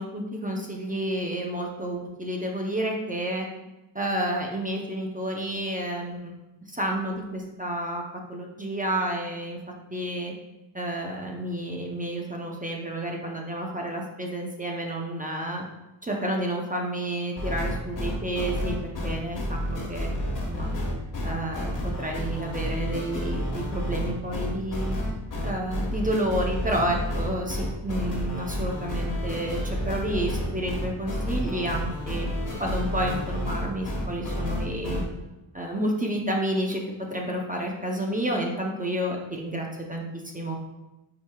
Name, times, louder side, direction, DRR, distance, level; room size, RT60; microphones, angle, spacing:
voice 1, 0.0-3.5 3.9-6.4 6.7-8.0 8.3-9.6 9.9-10.3 10.7-15.6 16.0-20.1 20.4-20.7 21.2-25.0 25.4-32.3 32.6-35.0 35.5-36.8 37.1-40.6, right 1 dB, 15° right, 0 dB, 0.6 m, -30 dB
sound 1, 17.4-35.0, equal, 40° left, 1.3 m, -30 dB
8.4 x 4.9 x 2.3 m, 1.0 s
wide cardioid pair, 165°, 49 cm